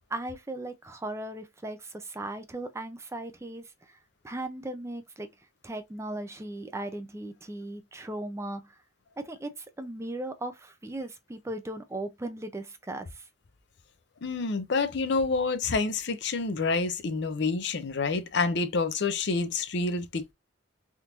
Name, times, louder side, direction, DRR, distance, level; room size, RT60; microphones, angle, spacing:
voice 1, 0.1-4.0 4.2-5.3 5.6-8.8 9.2-13.2, right 1 dB, 15° right, 0.4 m, -37 dB
voice 2, 14.2-20.3, left 4 dB, 65° left, 0.6 m, -28 dB
3.5 x 2.5 x 2.9 m
head